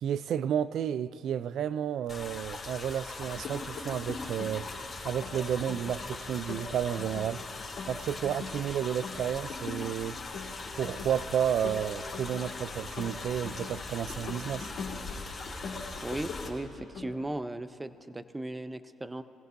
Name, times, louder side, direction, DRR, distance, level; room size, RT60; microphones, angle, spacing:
voice 1, 0.0-4.7 5.0-7.4 7.9-10.2 10.7-14.7, right 9 dB, 65° right, 0.4 m, -31 dB
sound 1, 2.1-16.5, left 3 dB, 30° left, 2.9 m, -41 dB
sound 2, 3.2-4.8 5.0-6.0 6.3-8.6 8.9-9.9 10.2-11.2 11.5-13.8 14.1-15.2 15.5-16.5 16.8-17.1, left 5 dB, 65° left, 2.7 m, -42 dB
voice 2, 16.0-19.2, right 1 dB, 15° right, 0.6 m, -37 dB
23.0 x 16.0 x 2.7 m
supercardioid pair, 65°, 0 cm